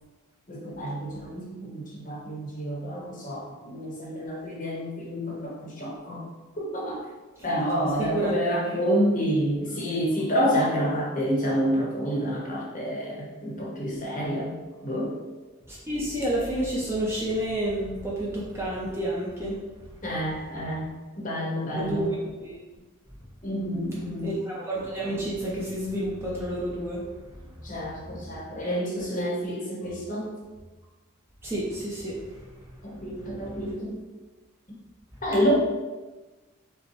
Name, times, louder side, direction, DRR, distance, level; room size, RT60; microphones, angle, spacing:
voice 1, 0.5-6.2 6.6-7.0 7.4-14.5 14.8-15.2 20.0-22.1 23.4-24.3 27.6-30.3 32.8-34.0 35.2-35.5, equal, 35° left, -3 dB, 0.8 m, -28 dB
voice 2, 15.7-19.6 21.7-22.1 22.4-22.5 24.2-27.0 27.9-28.3 31.4-32.2, right 1 dB, 10° right, -6 dB, 0.5 m, -30 dB
5.4 x 2.1 x 3.0 m, 1.2 s
head